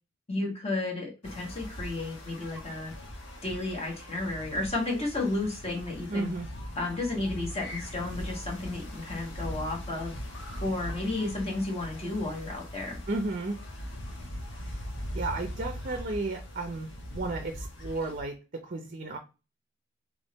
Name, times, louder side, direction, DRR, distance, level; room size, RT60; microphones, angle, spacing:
voice 1, 0.3-2.9 3.4-6.3 6.8-10.1 10.6-13.0, left 2 dB, 30° left, -1 dB, 1.3 m, -32 dB
sound 1, 1.2-18.2, equal, 60° left, 1.1 m, -40 dB
voice 2, 6.1-6.5 13.1-13.6 15.1-19.2, right 2 dB, 40° right, 5 dB, 0.6 m, -33 dB
3.6 x 3.1 x 4.1 m, 0.30 s
head